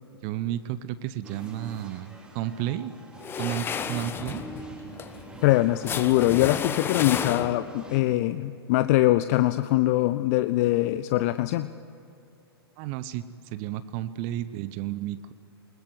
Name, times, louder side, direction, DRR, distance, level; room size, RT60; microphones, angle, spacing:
voice 1, 0.2-2.9 3.4-4.4 12.8-15.3, right 12 dB, 35° right, 14 dB, 0.9 m, -32 dB
sound 1, 1.2-8.0, right 1 dB, 5° right, 3.2 m, -46 dB
sound 2, 3.2-7.8, left 7 dB, 15° left, 1.1 m, -32 dB
voice 2, 5.4-11.7, left 16 dB, 40° left, 12 dB, 0.7 m, -23 dB
21.0 x 20.5 x 9.5 m, 2.6 s
figure-of-eight pair, 110°, 13 cm